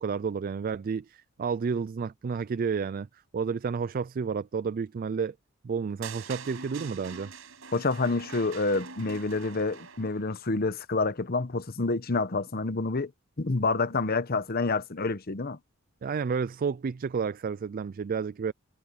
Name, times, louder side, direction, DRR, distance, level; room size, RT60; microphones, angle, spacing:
voice 1, 0.0-3.1 3.3-5.3 5.6-7.3 16.0-18.5, right 5 dB, 45° right, 0.3 m, -31 dB
sound 1, 6.0-10.3, right 5 dB, 75° right, 6.8 m, -44 dB
voice 2, 7.7-13.1 13.4-15.6, left 3 dB, 45° left, 1.0 m, -28 dB
head